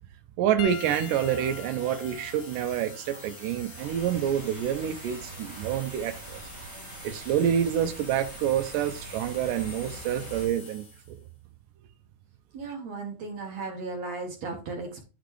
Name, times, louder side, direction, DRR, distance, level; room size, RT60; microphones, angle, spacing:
voice 1, 0.4-6.4 7.0-10.8, right 9 dB, 80° right, 1.9 m, -27 dB
Piano, 0.6-5.3 6.2-6.4 8.3-8.4, left 10 dB, 80° left, 2.4 m, -44 dB
sound 1, 0.7-11.2, left 2 dB, 40° left, 1.4 m, -46 dB
sound 2, 3.7-10.5, right 3 dB, 35° right, 2.3 m, -44 dB
voice 2, 12.5-15.0, right 3 dB, 65° right, 1.8 m, -36 dB
11.5 x 4.0 x 3.2 m
omnidirectional pair, 4.5 m